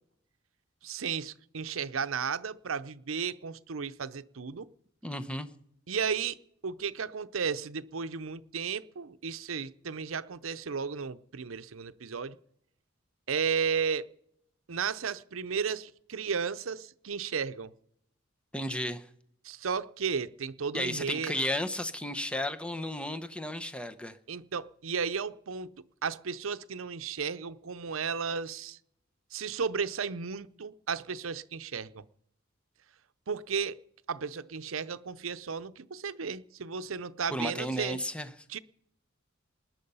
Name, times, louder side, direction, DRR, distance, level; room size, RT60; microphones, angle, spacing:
voice 1, 0.8-4.7 5.9-6.4 6.6-12.4 13.3-14.1 14.7-17.7 19.4-21.3 24.3-25.7 26.0-28.8 29.3-32.0 33.3-33.8 34.1-38.0 38.5-38.6, right 6 dB, 80° right, 0.7 m, -34 dB
voice 2, 5.0-5.5 18.5-19.1 20.7-24.2 37.3-38.3, left 1 dB, 5° left, 0.8 m, -33 dB
20.0 x 10.5 x 5.6 m
head